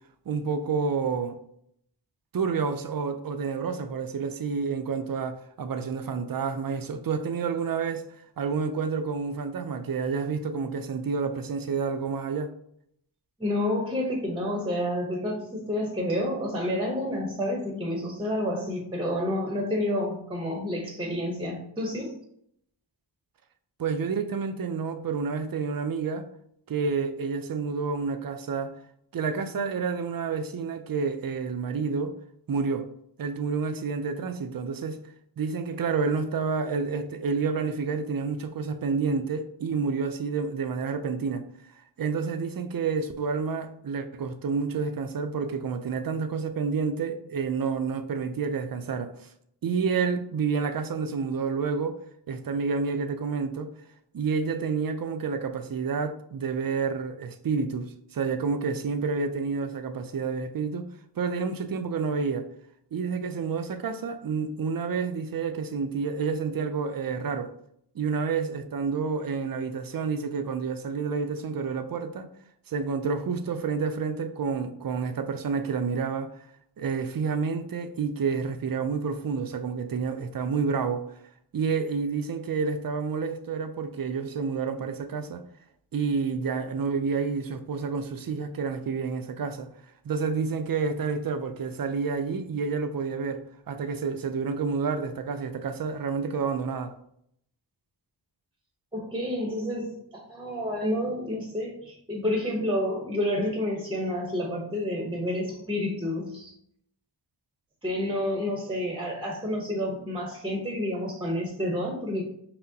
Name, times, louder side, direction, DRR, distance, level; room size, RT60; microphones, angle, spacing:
voice 1, 0.3-1.4 2.3-8.0 8.4-12.5 23.8-26.3 26.7-28.7 29.1-32.2 32.5-32.9 33.2-35.0 35.4-41.4 42.0-49.3 49.6-52.0 52.3-53.7 54.1-60.9 61.2-62.5 62.9-67.5 67.9-72.3 72.7-76.3 76.8-81.1 81.5-85.4 85.9-89.7 90.0-96.9, right 5 dB, 50° right, 0.5 m, -29 dB
voice 2, 13.4-22.1 98.9-99.9 100.3-106.5 107.8-112.3, left 1 dB, 10° right, 0.8 m, -29 dB
5.8 x 2.1 x 2.7 m
wide cardioid pair, 40°, 45 cm